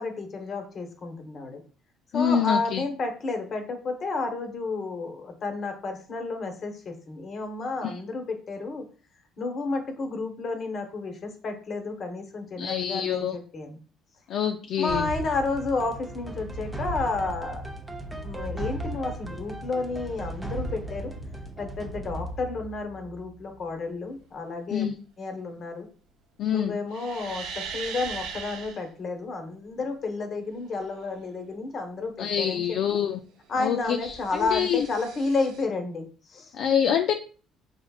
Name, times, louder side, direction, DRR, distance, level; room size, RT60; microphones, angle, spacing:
voice 1, 0.0-1.6 2.1-8.8 9.4-13.8 14.8-17.6 18.2-21.1 21.6-24.8 25.2-25.9 26.5-33.0 33.5-36.5, left 3 dB, 40° left, 5 dB, 1.0 m, -31 dB
voice 2, 2.1-2.8 7.8-8.0 12.6-13.4 14.3-15.1 24.7-24.9 26.4-26.8 32.2-33.2 33.6-34.9 36.5-37.1, left 8 dB, 55° left, 4 dB, 0.4 m, -26 dB
sound 1, 14.9-23.7, right 1 dB, 10° right, 0.7 m, -36 dB
sound 2, 26.9-28.8 33.6-35.6, right 6 dB, 90° right, 0.6 m, -39 dB
4.9 x 3.5 x 2.4 m, 0.39 s
cardioid pair, 140°, 0 cm